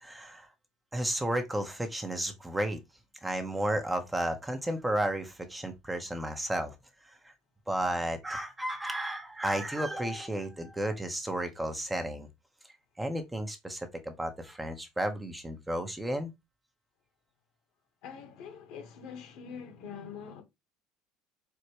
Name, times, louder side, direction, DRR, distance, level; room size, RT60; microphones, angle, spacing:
voice 1, 0.0-0.5 0.9-2.8 3.2-6.7 7.2-7.3 7.7-12.3 13.0-16.3, right 1 dB, 10° right, 0.7 m, -33 dB
voice 2, 18.0-20.4, left 6 dB, 70° left, 1.2 m, -44 dB
4.5 x 2.1 x 2.8 m
supercardioid pair, 90°, 0 cm